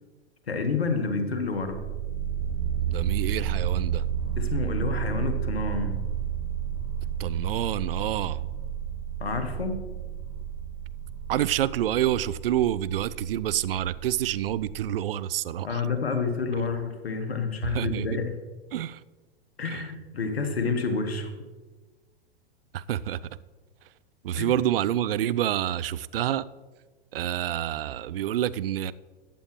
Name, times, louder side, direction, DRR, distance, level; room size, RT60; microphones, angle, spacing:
voice 1, 0.5-1.8 4.4-5.9 9.2-9.8 15.6-18.3 19.6-21.3 24.4-24.5, left 4 dB, 75° left, 1.4 m, -29 dB
sound 1, 1.5-14.9, right 9 dB, 30° right, 2.5 m, -32 dB
voice 2, 2.9-4.1 7.2-8.5 11.3-15.9 17.6-18.2 18.7-19.0 19.6-19.9 22.7-23.2 24.2-26.5 27.1-28.9, right 11 dB, 65° right, 0.4 m, -28 dB
14.5 x 8.9 x 3.0 m
figure-of-eight pair, 100°, 31 cm